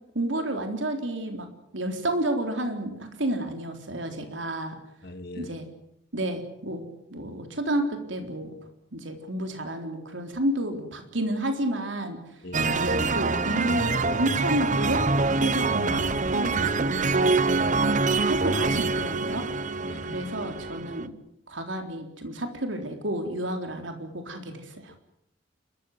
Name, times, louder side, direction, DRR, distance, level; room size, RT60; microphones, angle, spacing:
voice 1, 0.1-1.5 1.7-4.7 5.4-5.7 6.1-8.6 8.9-12.4 12.7-15.0 15.4-17.4 17.8-19.5 20.0-21.1 21.5-24.9, right 1 dB, 80° right, 5 dB, 3.8 m, -31 dB
voice 2, 5.0-5.5 12.4-12.8 17.8-18.0 19.8-20.2, left 1 dB, 60° left, 10 dB, 2.1 m, -41 dB
sound 1, 12.5-21.1, right 3 dB, 40° right, 1.0 m, -25 dB
Car / Engine starting / Idling, 15.5-19.0, equal, 10° left, 2.5 m, -46 dB
29.5 x 14.5 x 9.4 m, 0.77 s
head